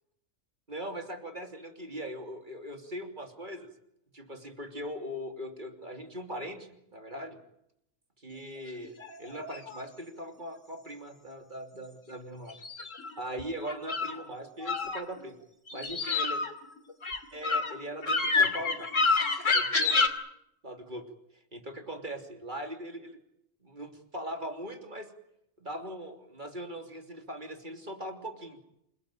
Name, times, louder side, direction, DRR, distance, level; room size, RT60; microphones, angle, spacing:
voice 1, 0.7-3.7 4.1-7.4 8.2-8.9 9.2-12.6 13.2-15.4 15.7-16.4 17.3-18.9 19.5-20.0 20.6-21.0 21.3-23.2 23.6-25.1 25.6-28.6, equal, 40° right, 4 dB, 3.3 m, -40 dB
sound 1, 8.8-9.8 12.5-14.2 14.6-15.3 15.7-20.1, left 4 dB, 85° left, 2.9 m, -28 dB
28.0 x 19.0 x 9.1 m, 0.78 s
omnidirectional pair, 1.3 m